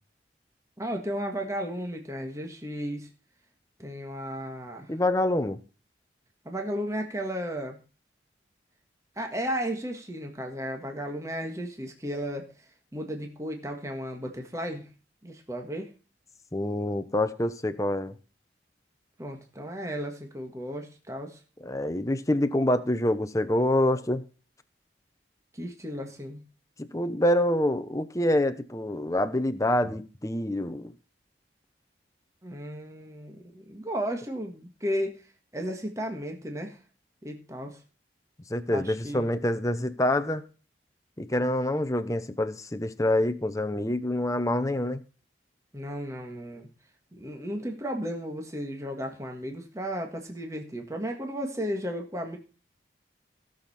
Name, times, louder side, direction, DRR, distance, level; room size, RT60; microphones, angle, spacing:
voice 1, 0.8-3.1 3.8-4.9 6.4-7.8 9.1-12.5 12.9-14.9 15.2-15.9 19.2-21.4 25.5-26.4 32.4-35.1 35.5-36.8 37.2-37.8 38.7-39.3 45.7-46.7 47.2-52.4, equal, 15° right, 1.6 m, -34 dB
voice 2, 4.9-5.6 16.5-18.1 21.6-24.2 26.8-30.9 38.5-40.4 41.2-45.0, left 1 dB, 20° left, 0.8 m, -26 dB
17.0 x 6.6 x 4.2 m
head